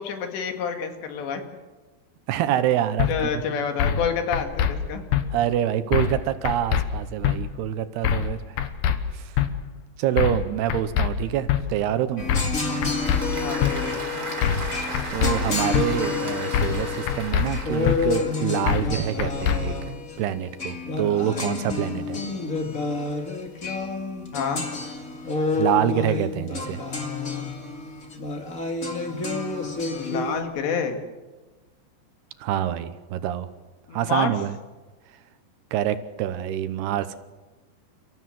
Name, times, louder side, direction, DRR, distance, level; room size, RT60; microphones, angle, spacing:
voice 1, 0.0-1.4 3.1-5.0 13.4-14.0 24.3-24.6 29.9-31.0 33.9-34.3, left 6 dB, 85° left, 5 dB, 4.3 m, -28 dB
voice 2, 2.3-3.1 3.5-3.6 5.3-8.6 9.1-9.3 10.0-12.3 15.1-19.8 20.2-22.2 25.6-26.8 32.4-33.5 33.9-34.6 35.7-37.2, right 11 dB, 75° right, 11 dB, 2.8 m, -26 dB
sound 1, 3.0-3.1 3.8-4.0 4.3-4.7 5.1-5.2 5.9-6.2 6.4-6.8 7.2-7.4 8.0-8.3 8.6-9.0 9.4-9.5 10.2-10.4 10.7-11.1 11.5-11.6 12.3-12.6 12.8-13.2 13.6-13.7 14.4-14.7 14.9-15.3 15.7-15.9 16.5-16.8 17.1-17.5 17.9-18.0 18.7-18.9 19.2-19.6, left 9 dB, 70° left, 2.7 m, -22 dB
Applause / Crowd, 12.0-18.5, right 2 dB, 20° right, 3.4 m, -35 dB
sound 2, 12.2-30.4, left 4 dB, 30° left, 1.6 m, -29 dB
30.0 x 15.0 x 7.7 m, 1.2 s
omnidirectional pair, 4.9 m